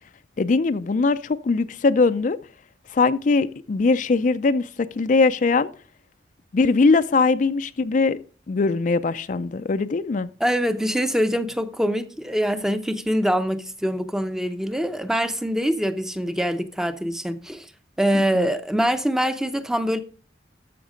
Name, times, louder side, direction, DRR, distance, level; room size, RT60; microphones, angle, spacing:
voice 1, 0.4-2.4 2.9-5.7 6.5-8.2 8.5-10.3 18.1-18.5, left 4 dB, 45° left, 0.4 m, -21 dB
voice 2, 10.4-17.7 18.0-20.0, equal, 5° right, 0.6 m, -24 dB
13.5 x 5.9 x 5.0 m
head